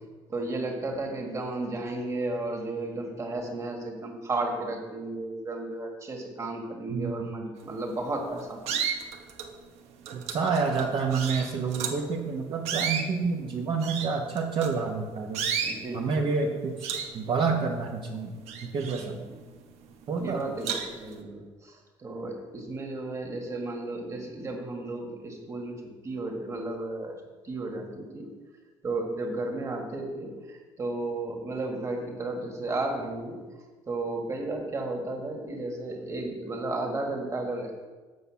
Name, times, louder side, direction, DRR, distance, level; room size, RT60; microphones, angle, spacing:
voice 1, 0.3-8.8 15.6-16.3 19.0-19.1 20.2-25.8 26.0-27.1 27.4-28.3 28.8-33.4 33.9-37.9, right 2 dB, 30° right, 2 dB, 1.7 m, -33 dB
voice 2, 6.9-7.3 10.1-15.5 15.9-18.3 18.6-19.2 20.1-20.4, right 4 dB, 50° right, 0 dB, 1.0 m, -28 dB
sound 1, 7.8-8.1 8.6-9.5 10.1-12.1 12.6-15.0 15.3-15.8 16.3-16.5 16.8-18.0 18.3-19.6 20.0-20.1 20.6-21.1, right 7 dB, 90° right, 1.1 m, -33 dB
8.1 x 5.5 x 7.0 m, 1.3 s
cardioid pair, 125°, 11 cm